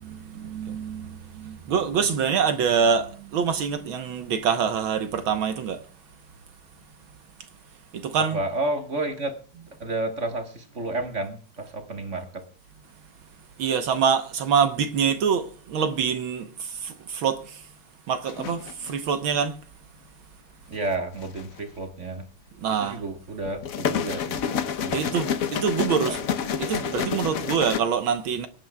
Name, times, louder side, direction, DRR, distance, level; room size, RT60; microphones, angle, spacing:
voice 1, 0.0-5.8 7.9-8.4 13.6-17.7 18.1-19.6 22.6-23.0 24.9-26.2 26.6-28.5, right 6 dB, 70° right, 1.7 m, -25 dB
voice 2, 8.2-9.4 9.7-12.5 20.7-22.3 22.7-24.4 24.8-25.0 26.0-26.2, right 2 dB, 40° right, 1.5 m, -31 dB
sound 1, 18.3-18.9 20.9-21.6 23.5-27.8, left 7 dB, 60° left, 0.9 m, -29 dB
25.0 x 9.3 x 2.2 m
omnidirectional pair, 2.4 m